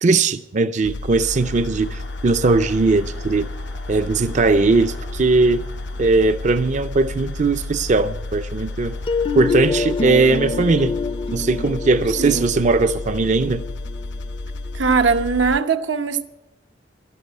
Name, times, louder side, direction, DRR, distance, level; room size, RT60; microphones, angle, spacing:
voice 1, 0.0-3.5 3.9-5.6 6.0-8.9 9.3-10.9 11.3-13.6, right 3 dB, 40° right, 0.5 m, -19 dB
sound 1, 0.8-15.6, left 2 dB, 75° left, 0.6 m, -32 dB
sound 2, 1.2-10.2, left 1 dB, 90° left, 4.8 m, -45 dB
sound 3, 9.1-14.9, left 4 dB, 30° left, 0.5 m, -27 dB
voice 2, 12.2-12.5 14.7-16.2, right 5 dB, 85° right, 0.9 m, -20 dB
12.0 x 11.5 x 8.2 m
head